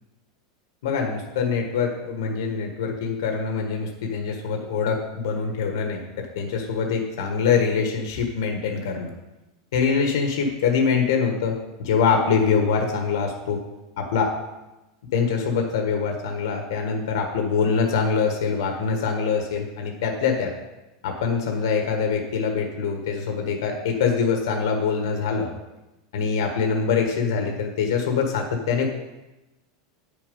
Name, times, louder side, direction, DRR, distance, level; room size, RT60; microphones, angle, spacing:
voice 1, 0.8-9.1 9.7-13.6 14.0-14.3 15.1-20.5 21.0-25.5 26.1-28.9, left 5 dB, 85° left, 3 dB, 1.4 m, -24 dB
9.1 x 6.8 x 5.4 m, 1.0 s
supercardioid pair, 170°, 2 cm